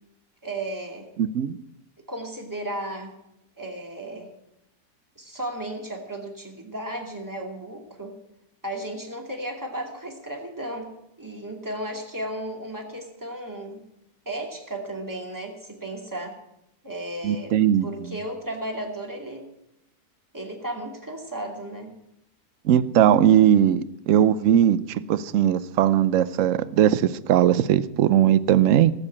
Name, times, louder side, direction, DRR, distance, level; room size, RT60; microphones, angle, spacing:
voice 1, 0.4-1.1 2.1-3.1 3.6-4.3 5.2-8.1 8.6-10.9 11.2-13.8 14.3-16.4 16.8-17.5 17.8-19.5 20.3-21.9, right 1 dB, 10° right, 1 dB, 2.5 m, -34 dB
voice 2, 1.2-1.6 17.2-17.9 22.6-28.9, right 10 dB, 65° right, 16 dB, 1.0 m, -19 dB
18.5 x 7.8 x 8.7 m, 0.85 s
omnidirectional pair, 1.6 m